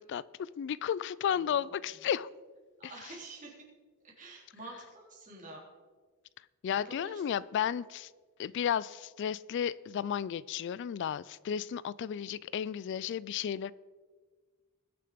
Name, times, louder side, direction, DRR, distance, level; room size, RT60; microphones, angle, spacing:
voice 1, 0.0-2.3 6.6-8.1 8.4-13.7, left 8 dB, 55° left, 20 dB, 0.3 m, -33 dB
voice 2, 1.3-1.7 2.8-3.6 4.0-5.6 6.7-7.2, right 2 dB, 35° right, -3 dB, 3.7 m, -48 dB
20.5 x 6.9 x 5.1 m, 1.4 s
head